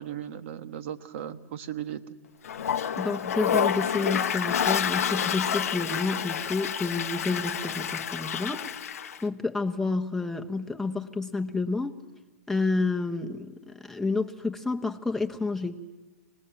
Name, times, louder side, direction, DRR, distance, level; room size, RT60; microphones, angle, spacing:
voice 1, 0.0-2.1, right 10 dB, 55° right, 11 dB, 1.3 m, -36 dB
Toilet flush, 2.4-9.2, left 8 dB, 70° left, 0.8 m, -29 dB
voice 2, 3.0-8.8 9.2-12.0 12.5-15.8, left 3 dB, 5° left, 3 dB, 1.1 m, -30 dB
26.0 x 19.0 x 7.6 m, 1.2 s
hypercardioid pair, 115°, 8 cm